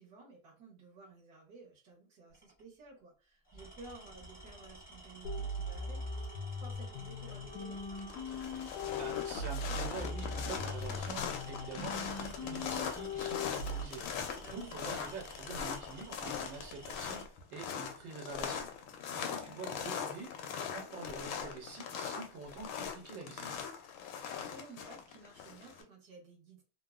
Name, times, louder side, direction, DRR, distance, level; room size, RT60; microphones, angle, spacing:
voice 1, 0.0-8.0 14.3-14.7 19.2-19.6 24.3-26.6, right 3 dB, 60° right, -2 dB, 1.4 m, -54 dB
Tools, 2.3-2.6 3.4-17.3, right 1 dB, 15° left, 0.3 m, -52 dB
sound 1, 5.2-13.8, left 2 dB, 70° left, 0.9 m, -40 dB
sound 2, 7.3-7.6 7.9-25.8, left 7 dB, 85° left, 1.3 m, -40 dB
voice 2, 9.0-18.7 19.1-23.6, right 4 dB, 90° right, 1 dB, 1.6 m, -46 dB
3.5 x 2.0 x 2.3 m, 0.33 s
omnidirectional pair, 2.1 m